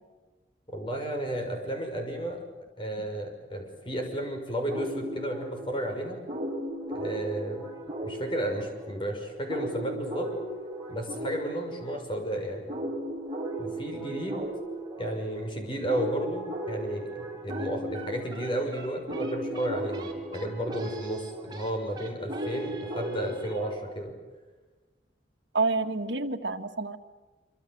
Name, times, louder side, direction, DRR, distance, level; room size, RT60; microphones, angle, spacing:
voice 1, 0.7-2.4 2.8-6.2 6.9-7.7 8.0-10.3 10.9-12.7 13.6-14.4 15.0-24.1, right 1 dB, 30° left, 3 dB, 6.2 m, -33 dB
sound 1, 4.7-23.8, right 1 dB, 25° right, 4.5 m, -37 dB
voice 2, 25.5-27.0, right 3 dB, 80° right, 5 dB, 1.9 m, -28 dB
26.5 x 26.0 x 8.1 m, 1.2 s
head